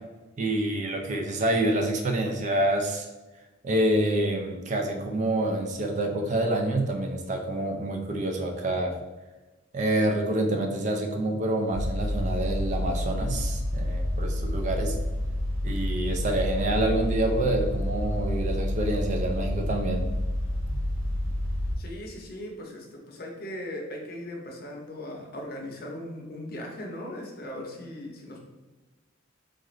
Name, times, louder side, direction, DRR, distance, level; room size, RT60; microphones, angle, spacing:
voice 1, 0.4-3.1 3.6-8.9 9.7-15.0 15.6-20.1 20.7-20.8, right 1 dB, 35° right, 2 dB, 0.4 m, -27 dB
sound 1, 11.7-21.7, left 1 dB, 75° right, 1.3 m, -29 dB
voice 2, 21.8-28.4, left 1 dB, 50° left, 0 dB, 0.7 m, -38 dB
3.7 x 2.5 x 3.1 m, 1.2 s
head